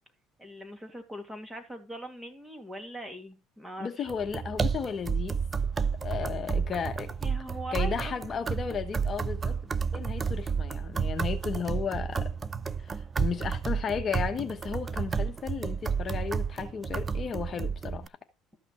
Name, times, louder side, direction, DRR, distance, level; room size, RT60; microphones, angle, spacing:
voice 1, 0.4-4.1 7.2-8.4, equal, 10° right, 2.5 m, -41 dB
voice 2, 3.8-5.4 6.0-7.1 7.7-12.3 12.8-18.1, left 6 dB, 40° left, 1.0 m, -34 dB
sound 1, 4.1-18.1, right 6 dB, 25° right, 0.5 m, -31 dB
13.0 x 6.0 x 4.3 m
supercardioid pair, 95°, 0 cm